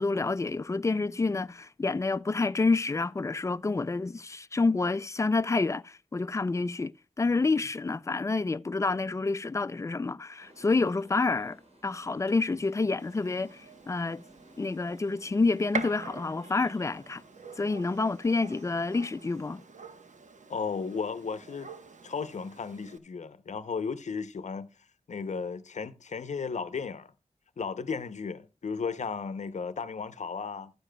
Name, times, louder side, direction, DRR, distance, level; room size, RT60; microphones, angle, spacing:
voice 1, 0.0-6.9 7.2-11.6 11.8-14.2 14.6-17.2 17.6-19.6, left 3 dB, 25° left, 0.4 m, -28 dB
sound 1, 10.4-19.5, right 1 dB, 60° right, 3.8 m, -59 dB
Gunshot gunfire, 13.0-23.0, right 4 dB, 80° right, 1.0 m, -44 dB
voice 2, 20.5-21.7 22.0-24.7 25.1-27.1 27.6-30.7, left 5 dB, 70° left, 0.7 m, -35 dB
13.0 x 10.0 x 2.2 m
wide cardioid pair, 80°, 12 cm